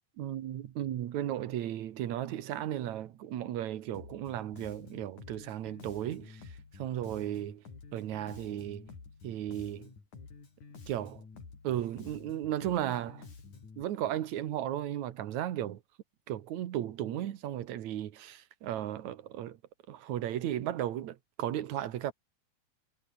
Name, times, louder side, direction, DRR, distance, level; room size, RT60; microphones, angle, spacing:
voice 1, 0.2-7.6 7.9-8.9 9.2-9.9 10.9-11.2 11.6-13.2 13.8-15.8 16.3-19.6 19.9-22.1, right 12 dB, 75° right, 2.7 m, -35 dB
Bass guitar, 3.9-13.8, left 4 dB, 80° left, 6.8 m, -50 dB
omnidirectional pair, 3.4 m